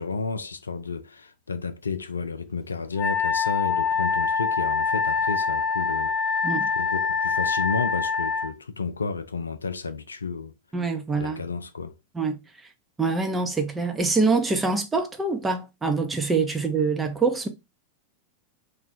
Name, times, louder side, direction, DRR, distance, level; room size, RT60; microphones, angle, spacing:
voice 1, 0.0-6.2 6.8-10.5 11.1-12.0, left 4 dB, 75° left, 0.3 m, -32 dB
Wind instrument woodwind instrument, 3.0-8.5, left 5 dB, 25° left, 0.8 m, -25 dB
voice 2, 10.7-11.4 12.1-12.4 13.0-17.5, right 4 dB, 15° right, 0.7 m, -25 dB
2.6 x 2.2 x 3.9 m
figure-of-eight pair, 90°, 0 cm